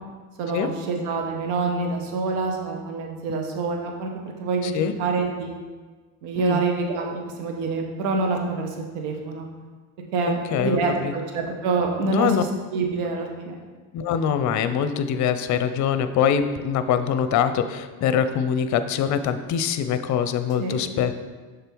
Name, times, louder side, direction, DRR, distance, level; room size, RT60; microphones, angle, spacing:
voice 1, 0.4-4.1 4.4-4.7 5.0-5.6 6.2-8.7 8.9-9.5 10.1-12.5 12.7-13.5 20.6-20.8, right 4 dB, 85° right, 2 dB, 1.1 m, -26 dB
voice 2, 4.6-4.9 6.4-6.6 10.2-11.1 12.0-12.4 13.9-21.1, left 8 dB, 50° left, 11 dB, 0.6 m, -24 dB
6.7 x 3.8 x 4.6 m, 1.4 s
supercardioid pair, 85°, 38 cm